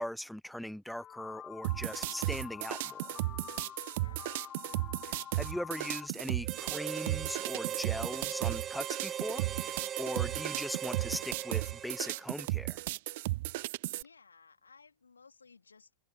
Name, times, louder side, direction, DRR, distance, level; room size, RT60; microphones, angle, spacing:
voice 1, 0.0-3.2 5.0-12.8, equal, ahead, 0.5 m, -40 dB
sound 1, 1.0-6.1, left 10 dB, 25° left, 1.5 m, -47 dB
sound 2, 1.6-14.0, right 20 dB, 50° right, 0.4 m, -35 dB
voice 2, 3.8-4.3 13.9-15.9, left 5 dB, 75° left, 3.2 m, -59 dB
Harmonica, 6.4-12.4, right 9 dB, 25° right, 0.9 m, -40 dB
figure-of-eight pair, 90°, 0 cm